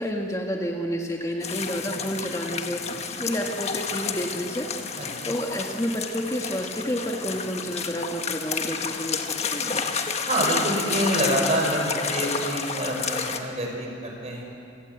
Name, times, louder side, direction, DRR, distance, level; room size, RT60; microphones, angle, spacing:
voice 1, 0.0-2.8 3.2-9.7, equal, 20° left, 1 dB, 1.7 m, -30 dB
sound 1, 1.4-13.4, left 5 dB, 40° left, 1.5 m, -30 dB
voice 2, 10.3-14.4, right 1 dB, 40° right, 1 dB, 5.5 m, -27 dB
28.5 x 18.5 x 8.2 m, 2.6 s
head